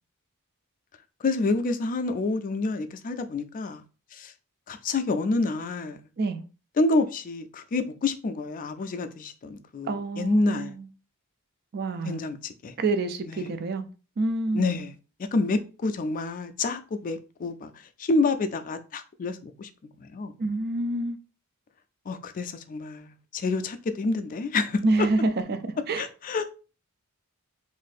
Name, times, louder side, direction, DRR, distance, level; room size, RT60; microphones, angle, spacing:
voice 1, 1.2-3.8 4.1-4.3 4.7-6.0 6.8-10.7 12.0-12.7 13.3-13.5 14.5-14.9 15.2-17.7 18.0-19.7 20.1-20.3 22.1-24.8 26.0-26.6, left 3 dB, 40° left, 0.4 m, -28 dB
voice 2, 9.9-10.9 11.7-12.2 12.8-13.8 14.2-14.7 20.4-21.2 24.8-26.1, right 2 dB, 45° right, 0.4 m, -27 dB
2.6 x 2.6 x 3.9 m
head